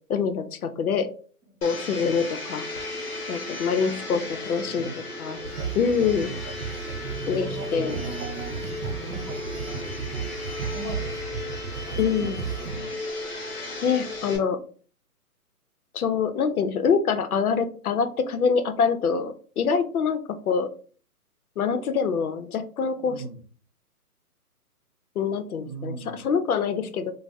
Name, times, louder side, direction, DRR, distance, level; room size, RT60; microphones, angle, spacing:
voice 1, 0.1-1.1 1.6-2.7 3.3-4.2 4.5-4.9 5.2-5.4 5.7-6.3 7.3-7.5 7.7-8.0 12.0-12.4 13.6-14.6 15.9-20.7 21.6-23.1 25.2-27.1, left 6 dB, 70° left, 10 dB, 0.6 m, -25 dB
voice 2, 1.5-2.2 4.1-4.3 4.5-5.1 6.1-6.6 7.2-8.7 9.0-11.2 11.8-13.0 23.0-23.4 25.6-26.2, right 2 dB, 15° right, -8 dB, 0.7 m, -41 dB
Domestic sounds home sounds, 1.6-14.4, left 2 dB, 40° left, 0.8 m, -35 dB
sound 1, 5.4-12.8, right 6 dB, 80° right, 0.6 m, -34 dB
2.5 x 2.0 x 3.3 m, 0.43 s
hypercardioid pair, 170°, 46 cm